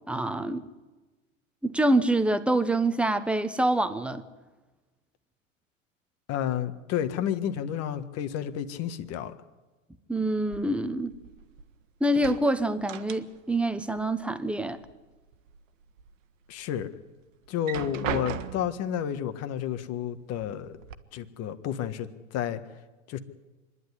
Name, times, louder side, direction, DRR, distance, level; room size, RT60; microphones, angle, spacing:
voice 1, 0.1-0.7 1.6-4.2 10.1-11.2 12.0-14.8, right 1 dB, 5° right, 1.0 m, -26 dB
voice 2, 6.3-9.3 16.5-16.9 17.5-20.8 21.1-22.6 23.1-23.2, left 10 dB, 40° left, 1.6 m, -31 dB
sound 1, 10.5-11.7 12.0-13.6 13.9-14.9 15.3-16.1 16.6-16.7 17.5-18.9 19.8-19.9 20.3-20.9, right 8 dB, 75° right, 1.4 m, -38 dB
25.5 x 11.0 x 9.9 m
hypercardioid pair, 115°, 39 cm